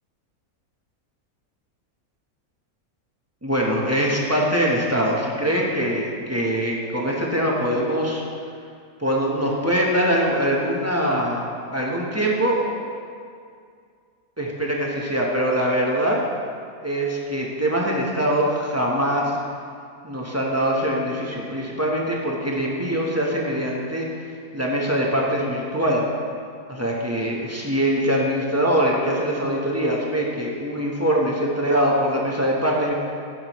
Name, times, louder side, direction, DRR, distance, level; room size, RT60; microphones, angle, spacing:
voice 1, 3.4-8.2 9.0-12.6 14.4-16.2 16.8-19.4 20.0-24.1 24.5-26.0 26.7-32.9, equal, 15° right, -3 dB, 0.8 m, -23 dB
13.0 x 6.2 x 3.0 m, 2.3 s
omnidirectional pair, 1.5 m